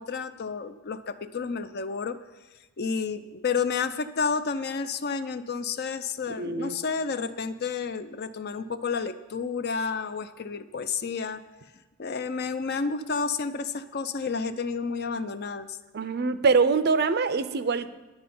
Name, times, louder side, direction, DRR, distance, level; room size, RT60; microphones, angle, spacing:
voice 1, 0.0-2.2 2.8-11.4 12.0-15.8, left 5 dB, 45° left, 12 dB, 0.5 m, -30 dB
voice 2, 6.4-6.8 15.9-17.9, right 4 dB, 45° right, 13 dB, 0.5 m, -24 dB
10.0 x 9.8 x 5.4 m, 1.2 s
head